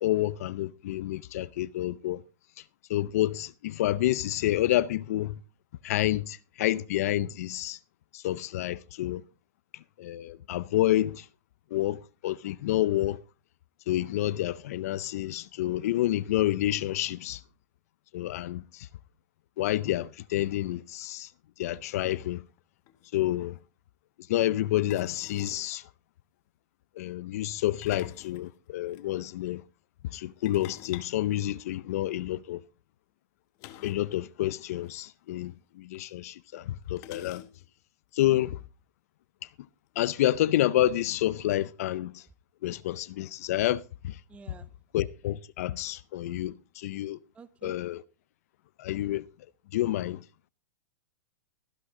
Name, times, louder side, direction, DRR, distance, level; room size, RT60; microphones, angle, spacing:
voice 1, 0.0-2.2 2.9-5.4 5.8-7.8 8.1-9.2 10.0-11.3 11.7-13.2 13.9-17.4 18.1-18.9 19.6-21.3 21.6-22.4 23.1-23.6 24.3-25.8 27.0-29.6 30.0-32.6 33.8-37.4 38.1-38.6 40.0-42.2 42.6-44.2 44.9-47.2 47.6-48.0 48.8-49.2 49.7-50.2, left 14 dB, 60° left, 0.6 m, -29 dB
sound 1, 22.6-22.7 22.9-23.1 24.9-25.7 27.6-29.0 30.5-32.1 33.6-34.1 34.4-34.5 34.8-34.9 35.9-36.0 37.0-37.8, left 13 dB, 35° left, 1.1 m, -47 dB
voice 2, 44.3-44.7 47.3-47.7, right 5 dB, 15° right, 0.8 m, -49 dB
14.0 x 11.0 x 3.7 m
supercardioid pair, 160°, 9 cm